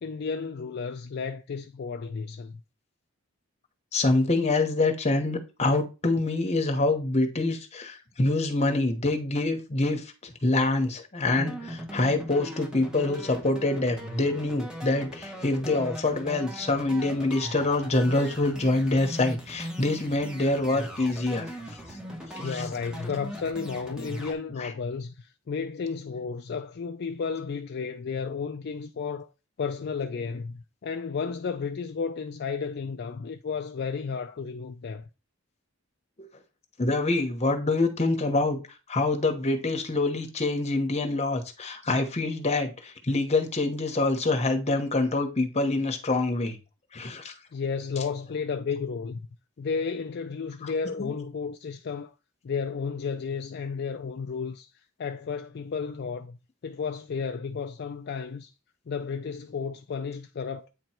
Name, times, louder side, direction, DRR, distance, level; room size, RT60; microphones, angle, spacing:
voice 1, 0.0-2.6 22.4-29.3 29.6-35.1 47.5-49.3 49.6-52.1 52.4-54.7 55.0-56.4 56.6-58.5 58.9-60.7, left 5 dB, 50° left, 0.4 m, -33 dB
voice 2, 3.9-21.5 22.3-22.7 24.6-24.7 36.8-38.6 38.9-46.6 46.9-47.3 50.6-50.7 51.0-51.1, left 2 dB, 30° left, 1.1 m, -26 dB
sound 1, 11.3-24.3, equal, 5° right, 1.1 m, -39 dB
8.8 x 3.0 x 4.4 m
head